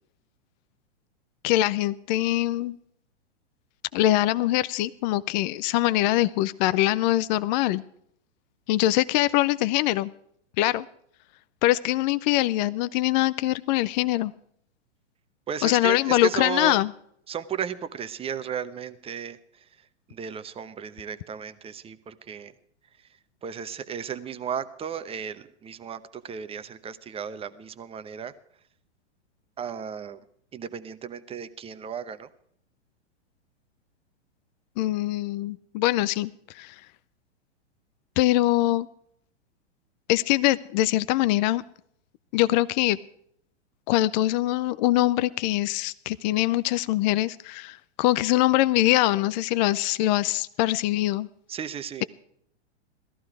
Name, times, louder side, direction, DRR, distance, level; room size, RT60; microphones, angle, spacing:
voice 1, 1.4-2.8 3.9-7.8 8.7-10.1 10.6-10.8 11.6-14.3 15.6-16.9 34.8-36.8 38.2-38.9 40.1-41.6 42.3-43.0 43.9-51.3, left 16 dB, 40° left, 16 dB, 0.5 m, -23 dB
voice 2, 15.5-16.8 17.3-19.4 20.1-22.5 23.4-28.3 29.6-30.2 30.5-32.3 51.5-52.0, right 7 dB, 15° right, 12 dB, 0.9 m, -34 dB
17.5 x 14.0 x 4.8 m, 0.68 s
hypercardioid pair, 110°, 35 cm